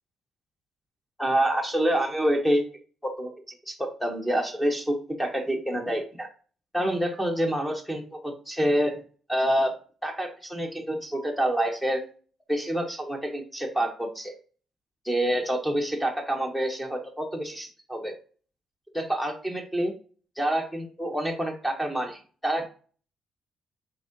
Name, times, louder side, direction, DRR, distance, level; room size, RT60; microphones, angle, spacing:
voice 1, 1.2-2.6 3.0-3.3 3.7-6.3 6.7-8.9 9.3-9.7 10.0-12.0 12.5-14.4 15.0-18.1 18.9-19.9 20.4-22.7, right 1 dB, 5° left, 3 dB, 1.2 m, -27 dB
5.1 x 3.7 x 2.7 m, 0.40 s
cardioid pair, 90°, 0 cm